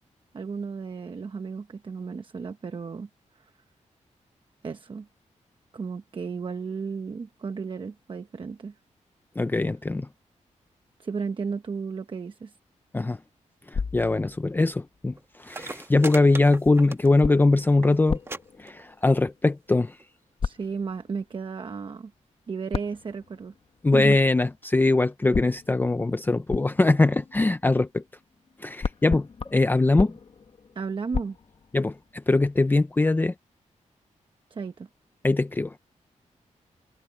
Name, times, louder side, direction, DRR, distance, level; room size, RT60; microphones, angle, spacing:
voice 1, 0.3-3.1 3.4-3.5 4.6-5.1 5.7-8.7 11.0-12.6 20.4-22.1 22.5-23.5 23.9-24.2 30.7-31.4 34.5-34.9, right 5 dB, 40° right, 1.0 m, -34 dB
voice 2, 9.4-10.1 12.9-13.2 13.7-18.2 18.6-20.0 23.8-28.0 28.6-30.1 31.7-33.3 35.2-35.8, left 2 dB, 15° left, 0.5 m, -22 dB
sound 1, 13.7-15.0 16.6-19.6 20.4-21.2 22.7-23.8 25.3-28.2 28.5-32.1, left 5 dB, 45° left, 1.3 m, -35 dB
sound 2, 15.2-15.3 15.4-17.4 17.6-17.9 18.3-18.4 18.7-19.2 20.0-20.1, right 2 dB, 20° right, 1.3 m, -38 dB
wide cardioid pair, 150°, 13 cm